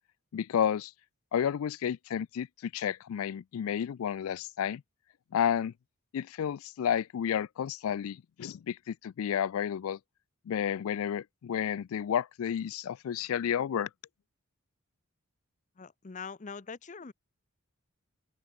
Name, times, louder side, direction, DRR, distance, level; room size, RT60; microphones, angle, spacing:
voice 1, 0.3-0.9 1.3-4.8 5.3-5.7 6.1-10.0 10.5-13.9, left 8 dB, 70° left, 0.3 m, -31 dB
voice 2, 15.8-17.1, left 5 dB, 35° left, 0.6 m, -43 dB
open air
head